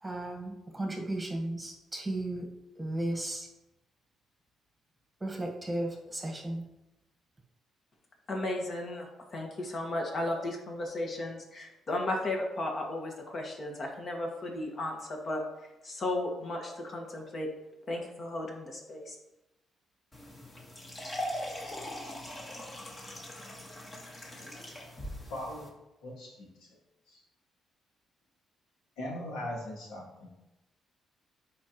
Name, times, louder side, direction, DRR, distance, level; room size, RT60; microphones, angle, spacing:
voice 1, 0.0-2.5 2.8-3.5 5.2-6.6, right 1 dB, 15° right, 1 dB, 1.4 m, -35 dB
voice 2, 8.3-15.4 15.8-17.5 17.9-19.1, left 1 dB, 45° left, 1 dB, 1.7 m, -35 dB
sound 1, 20.1-25.7, left 1 dB, 25° left, 1.6 m, -41 dB
voice 3, 25.3-25.7 26.0-26.8 27.1-27.2 29.0-30.3, left 1 dB, 90° left, -2 dB, 2.0 m, -40 dB
10.5 x 4.3 x 3.1 m, 0.95 s
cardioid pair, 90°, 0 cm